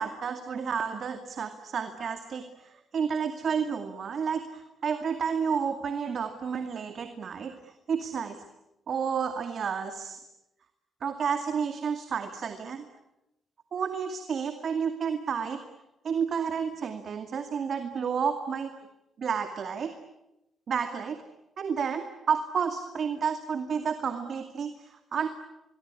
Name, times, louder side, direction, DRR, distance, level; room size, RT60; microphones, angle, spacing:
voice 1, 0.0-8.4 8.9-10.2 11.0-12.9 13.7-15.6 16.0-18.7 19.2-19.9 20.7-21.2 21.6-25.3, right 6 dB, 60° right, 8 dB, 2.3 m, -31 dB
25.5 x 23.5 x 9.8 m, 0.91 s
cardioid pair, 90°, 0 cm